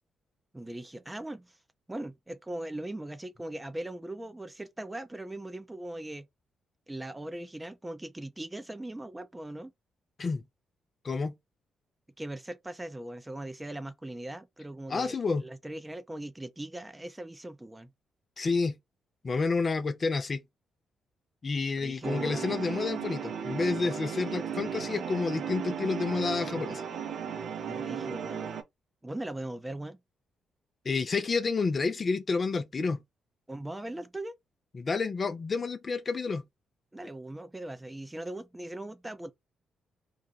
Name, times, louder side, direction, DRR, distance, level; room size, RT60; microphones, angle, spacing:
voice 1, 0.5-1.6 1.9-6.3 6.9-9.7 12.2-17.9 21.8-22.5 27.6-28.5 29.0-30.0 33.5-34.4 36.9-39.3, right 1 dB, 15° right, 0.6 m, -40 dB
voice 2, 11.0-11.4 14.9-15.4 18.4-18.8 19.2-20.4 21.4-26.8 30.8-33.0 34.7-36.4, left 4 dB, 45° left, 0.5 m, -29 dB
sound 1, 22.0-28.6, right 7 dB, 65° right, 0.5 m, -35 dB
2.5 x 2.2 x 4.0 m
hypercardioid pair, 45°, 0 cm